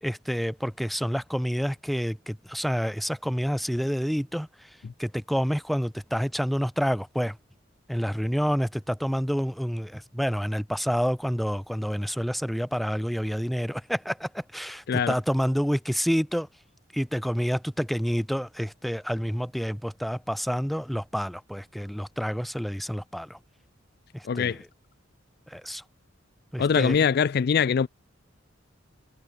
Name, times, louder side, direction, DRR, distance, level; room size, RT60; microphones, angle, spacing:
voice 1, 0.0-4.7 5.0-7.4 7.9-16.5 16.9-23.4 24.1-24.7 25.5-25.8 26.5-27.0, equal, ahead, 1.0 m, -28 dB
voice 2, 24.2-24.6 26.6-27.9, left 6 dB, 50° left, 0.4 m, -23 dB
head